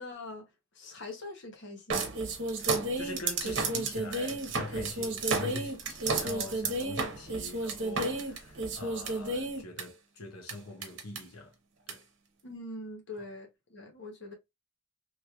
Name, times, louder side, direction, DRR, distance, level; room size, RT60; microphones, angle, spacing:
voice 1, 0.0-2.1 12.4-14.3, left 2 dB, 55° left, 0.9 m, -43 dB
sound 1, 1.9-9.8 10.5-10.6 10.8-11.2 11.9-12.0, right 3 dB, 55° right, 0.9 m, -32 dB
voice 2, 2.5-11.5 11.9-12.0, left 2 dB, 80° left, 0.9 m, -43 dB
3.1 x 3.0 x 2.3 m
head